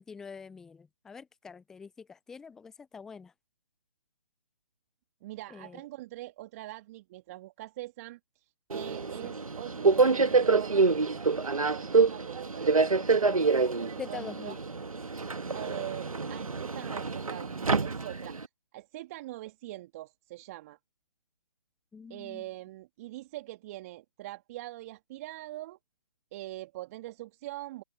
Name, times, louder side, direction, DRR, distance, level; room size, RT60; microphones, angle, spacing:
voice 1, 0.0-3.3 5.5-5.8 9.2-9.3 14.0-14.6 15.7-15.8 21.9-22.4, left 5 dB, 5° left, 0.5 m, -45 dB
voice 2, 5.2-8.4 8.7-13.5 13.8-14.6 15.5-20.8 22.1-25.8 26.3-27.8, right 16 dB, 25° right, 1.9 m, -43 dB
Subway metro underground, 8.7-18.5, right 4 dB, 75° right, 1.6 m, -27 dB
figure-of-eight pair, 145°, 18 cm